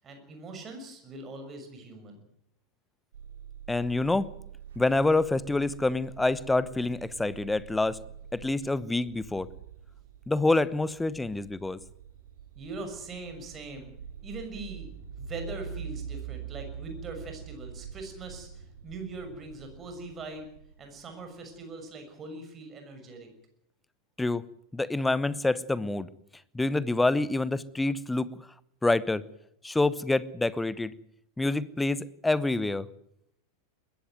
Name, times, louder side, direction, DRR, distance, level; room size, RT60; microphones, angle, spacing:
voice 1, 0.0-2.2 12.5-13.9 14.2-14.9 15.2-20.5 20.8-23.3, right 2 dB, 25° right, 5 dB, 6.5 m, -41 dB
sound 1, 3.1-21.6, right 8 dB, 60° right, 3.0 m, -45 dB
voice 2, 3.7-4.3 4.8-8.0 8.3-9.5 10.3-11.8 24.2-24.4 24.7-26.1 26.5-28.5 28.8-29.2 29.6-30.9 31.4-32.9, left 2 dB, 5° left, 19 dB, 1.0 m, -27 dB
21.0 x 15.5 x 9.4 m, 0.77 s
figure-of-eight pair, 90°, 0 cm